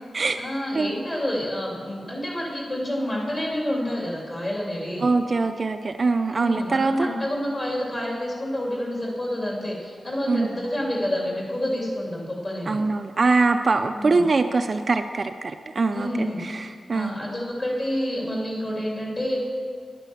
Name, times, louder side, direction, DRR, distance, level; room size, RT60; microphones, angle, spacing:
voice 1, 0.4-5.1 6.3-12.8 13.9-14.3 15.9-16.6 16.9-19.4, left 1 dB, 30° left, -3 dB, 2.8 m, -28 dB
voice 2, 5.0-7.1 10.3-10.5 12.7-17.1, right 3 dB, 35° right, 7 dB, 0.4 m, -23 dB
10.5 x 9.0 x 7.0 m, 2.1 s
wide cardioid pair, 180°, 0 cm